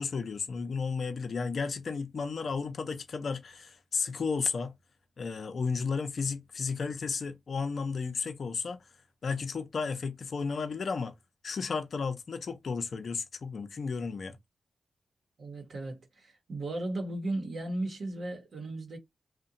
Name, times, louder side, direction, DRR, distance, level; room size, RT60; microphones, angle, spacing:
voice 1, 0.0-4.7 5.2-8.8 9.2-11.1 11.4-14.4, left 5 dB, 65° left, 0.5 m, -33 dB
voice 2, 15.4-19.0, right 2 dB, 75° right, 0.8 m, -36 dB
2.7 x 2.1 x 2.5 m
supercardioid pair, 45°, 0 cm